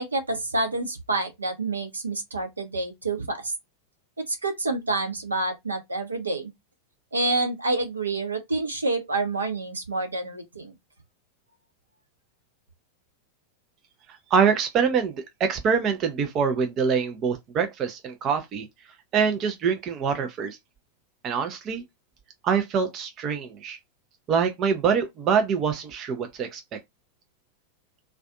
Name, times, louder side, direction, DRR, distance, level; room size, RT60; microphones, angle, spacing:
voice 1, 0.0-3.5 4.3-6.5 7.1-10.7, right 2 dB, 75° right, 0.7 m, -28 dB
voice 2, 14.3-18.7 19.1-20.6 21.2-21.8 22.4-23.8 24.3-26.8, right 6 dB, 30° right, 0.5 m, -25 dB
2.4 x 2.2 x 2.4 m
figure-of-eight pair, 90°, 0 cm